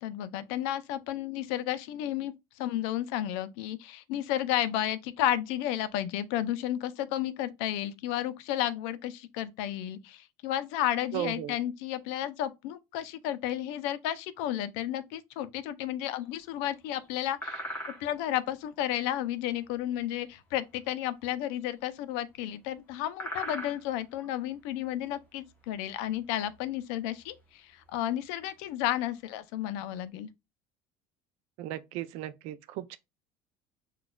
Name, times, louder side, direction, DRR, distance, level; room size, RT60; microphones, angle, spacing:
voice 1, 0.0-17.6 18.0-30.3, left 12 dB, 75° left, 0.4 m, -32 dB
voice 2, 11.1-11.6 31.6-33.0, right 13 dB, 60° right, 0.4 m, -36 dB
sound 1, 16.2-16.7 17.0-17.1 17.4-18.3 18.9-20.3 20.6-20.9 21.2-21.3 21.6-21.7 22.5-22.7 22.9-24.4 24.7-25.1 25.6-26.7 27.1-27.4 27.8-27.9 28.2-28.6 29.3-29.4 29.7-29.9, equal, 15° left, 0.8 m, -41 dB
6.1 x 2.3 x 2.2 m
cardioid pair, 180°, 11 cm